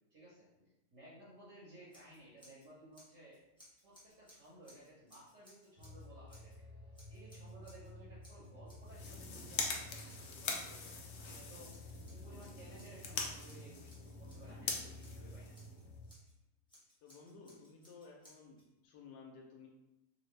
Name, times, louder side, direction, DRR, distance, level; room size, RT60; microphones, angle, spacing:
voice 1, 0.1-3.4 3.8-6.7 7.1-15.6, right 1 dB, 55° right, -8 dB, 1.1 m, -58 dB
Scissors, 1.9-2.7 2.9-6.6 6.9-7.9 8.2-9.7 10.1-14.5 15.0-16.3 16.7-18.7, equal, 5° left, 0.6 m, -64 dB
sound 1, 5.8-16.1, left 1 dB, 80° right, 1.3 m, -53 dB
sound 2, 8.8-16.1, left 4 dB, 70° left, 0.7 m, -43 dB
voice 2, 17.0-19.7, left 4 dB, 90° left, -1 dB, 1.2 m, -55 dB
3.0 x 2.5 x 3.2 m, 0.91 s
omnidirectional pair, 1.8 m